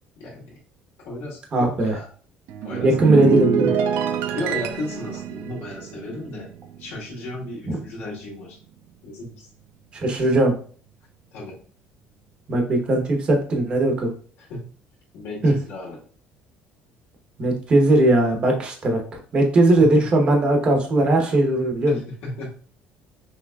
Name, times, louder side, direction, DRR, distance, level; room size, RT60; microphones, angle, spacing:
voice 1, 0.2-0.6 1.0-2.1 2.6-3.3 4.3-6.5 6.8-8.6 9.0-9.5 11.3-11.5 14.4-14.7 15.1-16.0 19.8-20.1 21.9-22.5, left 2 dB, 80° left, -5 dB, 2.2 m, -34 dB
voice 2, 1.5-1.9 2.8-3.7 7.7-7.8 9.9-10.5 12.5-14.1 15.4-15.5 17.4-19.0 19.3-22.0, right 1 dB, 25° right, 2 dB, 0.9 m, -19 dB
sound 1, 2.5-7.1 7.4-7.7, right 8 dB, 65° right, 0.5 m, -26 dB
5.9 x 3.0 x 2.3 m, 0.43 s
cardioid pair, 175°, 4 cm